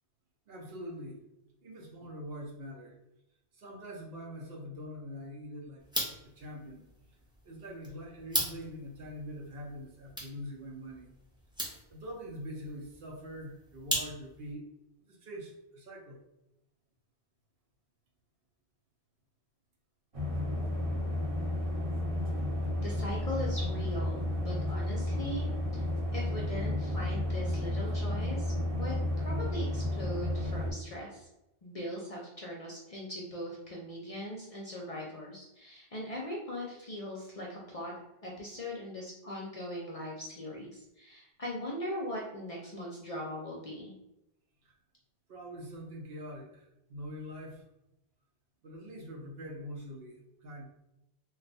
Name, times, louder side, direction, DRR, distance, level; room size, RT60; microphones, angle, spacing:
voice 1, 0.5-1.2 1.6-2.9 3.5-5.8 6.4-6.9 7.4-11.1 11.9-14.6 15.1-16.2 44.6-44.7 45.3-47.6 48.6-50.7, equal, 65° right, 0 dB, 0.8 m, -44 dB
sound 1, 5.8-14.5, equal, 5° right, 0.5 m, -40 dB
sound 2, 20.1-30.7, left 1 dB, 35° right, 0.8 m, -32 dB
voice 2, 22.8-25.9 26.1-28.5 28.8-31.3 31.6-37.9 38.2-43.9, left 1 dB, 50° left, -3 dB, 0.5 m, -40 dB
2.3 x 2.2 x 3.9 m, 0.89 s
omnidirectional pair, 1.1 m